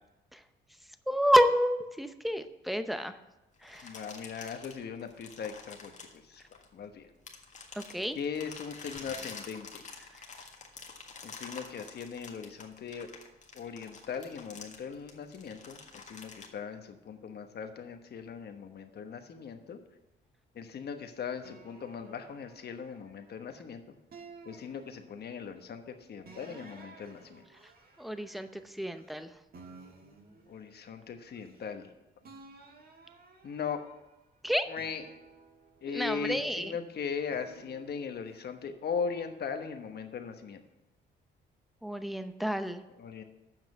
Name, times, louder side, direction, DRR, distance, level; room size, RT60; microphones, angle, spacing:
voice 1, 1.1-3.2 3.6-4.0 7.7-8.2 10.1-10.2 27.6-27.7 28.0-29.3 34.4-34.6 35.9-36.7 41.8-42.8, equal, ahead, 10 dB, 0.7 m, -29 dB
sound 1, 3.6-6.8 7.3-16.5, left 4 dB, 40° left, 1.6 m, -47 dB
voice 2, 3.8-6.4 6.7-7.1 8.1-9.8 11.2-13.1 13.5-15.8 16.1-19.8 20.5-24.0 24.4-27.4 30.5-31.9 33.4-33.8 34.7-35.0 35.8-40.6 43.0-43.2, left 6 dB, 55° left, 6 dB, 1.2 m, -39 dB
sound 2, 21.4-23.6 24.1-25.5 26.3-29.2 29.5-31.9 32.2-34.2 34.7-36.7 37.3-38.4, right 3 dB, 50° right, 1.5 m, -55 dB
7.5 x 5.9 x 7.7 m, 0.98 s
cardioid pair, 90°, 20 cm